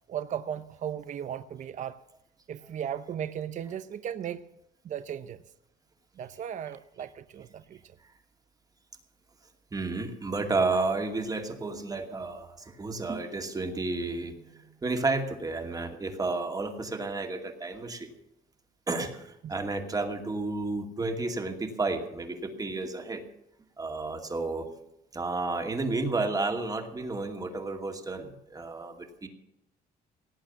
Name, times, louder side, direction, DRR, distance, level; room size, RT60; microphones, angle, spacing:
voice 1, 0.1-2.0 2.5-4.4 4.8-5.4 6.2-8.0 19.4-19.5, right 9 dB, 45° right, 13 dB, 0.7 m, -36 dB
voice 2, 9.7-18.1 18.9-23.2 23.8-24.7 25.1-29.3, right 3 dB, 20° right, 5 dB, 2.4 m, -31 dB
18.0 x 8.8 x 7.2 m, 0.89 s
cardioid pair, 110°, 17 cm